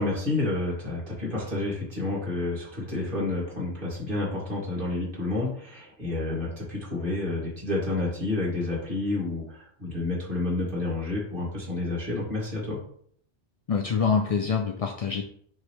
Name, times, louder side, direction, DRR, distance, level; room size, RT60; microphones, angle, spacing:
voice 1, 0.0-12.8, left 2 dB, 45° right, -5 dB, 2.5 m, -29 dB
voice 2, 13.7-15.2, left 6 dB, 55° left, 3 dB, 0.4 m, -25 dB
9.3 x 3.2 x 3.2 m, 0.62 s
omnidirectional pair, 1.2 m